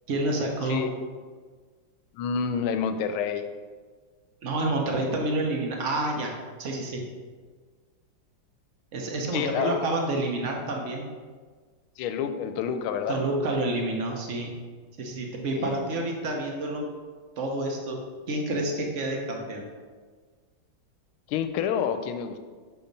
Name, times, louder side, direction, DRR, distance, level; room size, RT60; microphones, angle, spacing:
voice 1, 0.1-0.9 4.4-6.3 6.6-7.0 8.9-11.1 13.1-14.6 15.0-16.9 17.4-19.7, right 2 dB, 65° right, 1 dB, 0.7 m, -29 dB
voice 2, 2.1-3.5 9.3-9.7 12.0-13.2 15.6-15.8 21.3-22.4, left 7 dB, 80° left, 9 dB, 1.4 m, -28 dB
5.8 x 4.2 x 5.2 m, 1.5 s
omnidirectional pair, 2.3 m